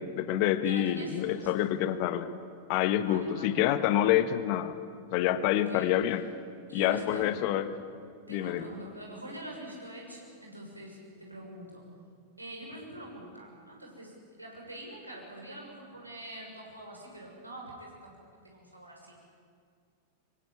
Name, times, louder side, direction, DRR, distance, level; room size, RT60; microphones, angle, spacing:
voice 1, 0.0-2.3 2.7-4.8 5.1-6.2 6.7-7.7 8.3-8.7, left 12 dB, 45° left, 12 dB, 1.5 m, -27 dB
voice 2, 0.6-1.7 3.0-3.6 5.5-5.9 6.7-7.4 8.3-11.8 12.4-18.2 18.4-19.2, right 1 dB, 85° right, -1 dB, 6.8 m, -44 dB
25.0 x 24.5 x 8.6 m, 2.2 s
figure-of-eight pair, 90°, 0 cm